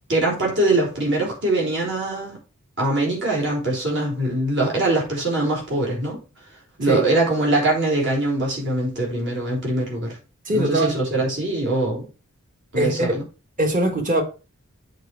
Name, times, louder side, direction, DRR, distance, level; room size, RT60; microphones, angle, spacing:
voice 1, 0.1-2.4 2.8-6.2 6.8-10.2 10.5-12.0 12.7-13.2, right 2 dB, 60° right, 3.6 m, -22 dB
voice 2, 10.4-11.0 12.7-13.1 13.6-14.2, right 1 dB, 40° right, 1.6 m, -21 dB
8.0 x 4.6 x 4.7 m
head